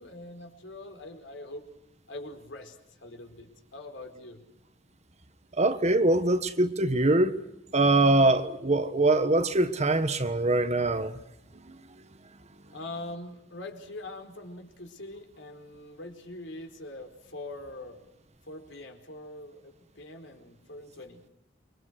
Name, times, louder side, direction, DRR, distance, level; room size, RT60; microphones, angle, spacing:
voice 1, 0.0-1.7 2.1-4.4 12.7-18.0 18.5-21.2, left 2 dB, 70° left, 4.7 m, -43 dB
voice 2, 5.6-7.3 7.7-11.2, right 2 dB, 35° right, 1.5 m, -23 dB
29.0 x 25.0 x 6.5 m
head